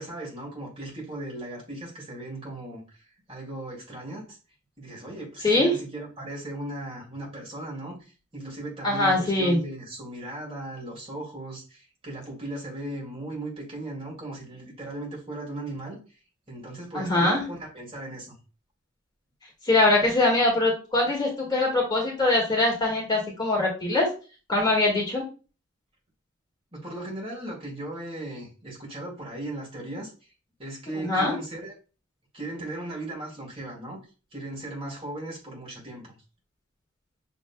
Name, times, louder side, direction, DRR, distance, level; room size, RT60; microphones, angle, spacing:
voice 1, 0.0-4.4 4.8-16.0 16.5-18.4 26.7-30.3 30.6-31.7 32.3-34.0 34.3-36.1, right 1 dB, 30° right, 2.0 m, -37 dB
voice 2, 8.8-9.6 16.9-17.4 19.7-24.1 24.5-25.2 31.0-31.3, left 2 dB, 20° left, 1.7 m, -22 dB
6.3 x 3.2 x 2.2 m
head